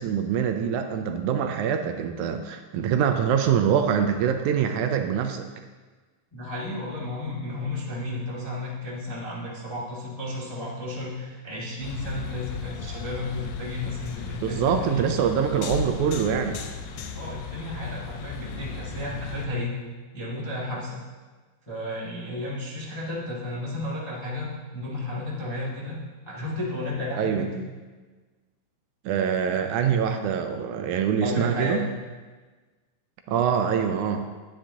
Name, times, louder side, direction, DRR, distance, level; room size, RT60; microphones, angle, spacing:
voice 1, 0.0-5.5 14.4-16.6 27.2-27.5 29.1-31.9 33.3-34.3, right 8 dB, 80° right, 6 dB, 2.0 m, -24 dB
voice 2, 6.3-15.2 17.1-19.7 20.1-21.0 21.7-26.0 26.2-27.6 31.2-31.8, left 1 dB, 20° left, -6 dB, 0.8 m, -33 dB
sound 1, 11.8-19.5, left 5 dB, 75° left, 1.9 m, -36 dB
10.0 x 9.7 x 2.8 m, 1.3 s
omnidirectional pair, 3.6 m